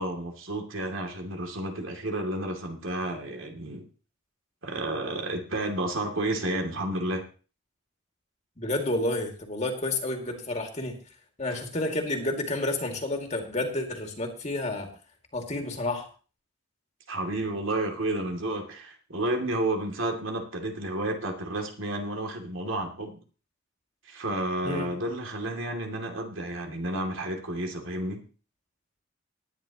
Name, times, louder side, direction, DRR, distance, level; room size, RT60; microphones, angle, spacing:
voice 1, 0.0-3.9 4.6-7.2 17.1-23.2 24.1-28.2, right 1 dB, 80° right, 3 dB, 2.7 m, -31 dB
voice 2, 8.6-11.0 11.4-14.9 15.3-16.1 24.6-24.9, left 2 dB, 35° left, 3 dB, 2.3 m, -30 dB
19.0 x 10.0 x 3.0 m, 0.37 s
head